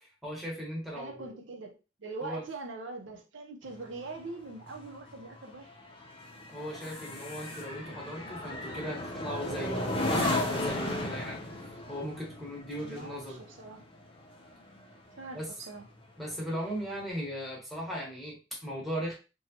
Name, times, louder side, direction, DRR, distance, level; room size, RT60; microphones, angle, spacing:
voice 1, 0.0-1.3 2.2-2.4 6.5-13.4 15.3-15.5 16.2-19.1, equal, ahead, 1.0 m, -38 dB
voice 2, 0.9-5.7 12.8-13.9 15.2-15.9, right 3 dB, 75° right, 0.6 m, -42 dB
sound 1, 3.6-15.3 15.7-16.0, left 1 dB, 30° left, 0.6 m, -35 dB
2.9 x 2.2 x 2.8 m
head